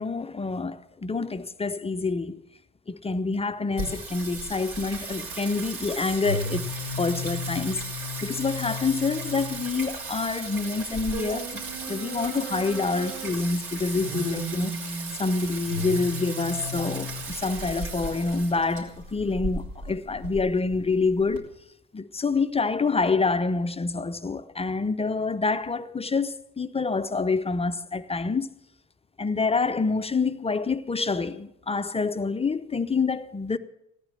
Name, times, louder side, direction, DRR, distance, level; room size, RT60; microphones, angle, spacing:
voice 1, 0.0-2.4 2.9-6.7 7.0-7.8 8.2-11.6 11.9-14.8 15.2-21.5 21.9-28.5 29.2-33.6, left 4 dB, 15° left, 0.7 m, -27 dB
Singing, 3.8-21.4, right 1 dB, 45° right, 4.5 m, -34 dB
18.0 x 10.0 x 7.5 m
figure-of-eight pair, 55°, 43 cm